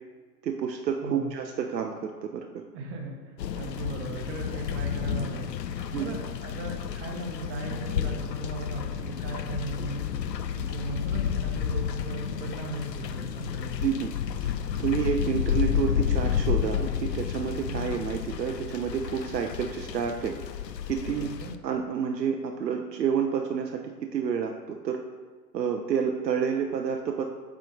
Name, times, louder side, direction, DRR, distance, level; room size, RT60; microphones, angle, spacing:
voice 1, 0.4-2.6 5.9-6.1 13.8-14.1 14.8-20.4 20.9-21.3 21.6-25.0 25.5-27.3, right 7 dB, 80° right, 3 dB, 0.6 m, -29 dB
voice 2, 2.7-5.5 5.9-10.1 10.5-13.7 17.7-17.9 21.1-21.5, right 2 dB, 25° right, 1 dB, 1.0 m, -37 dB
sound 1, 3.4-21.6, left 9 dB, 80° left, 0.6 m, -31 dB
7.7 x 3.7 x 3.8 m, 1.4 s
figure-of-eight pair, 105°, 49 cm